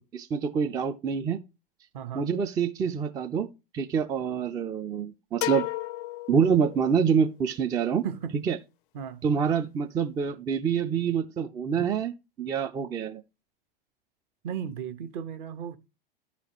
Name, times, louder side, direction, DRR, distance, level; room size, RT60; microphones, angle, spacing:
voice 1, 0.1-1.4 2.1-3.5 3.7-5.7 6.3-8.0 8.5-8.6 9.2-13.2, right 6 dB, 15° right, 0.3 m, -26 dB
voice 2, 1.9-2.3 8.0-8.3 8.9-9.2 14.4-15.8, right 8 dB, 55° right, 1.1 m, -35 dB
sound 1, 5.4-7.2, left 16 dB, 60° left, 0.5 m, -34 dB
12.5 x 4.2 x 2.9 m
hypercardioid pair, 100°, 29 cm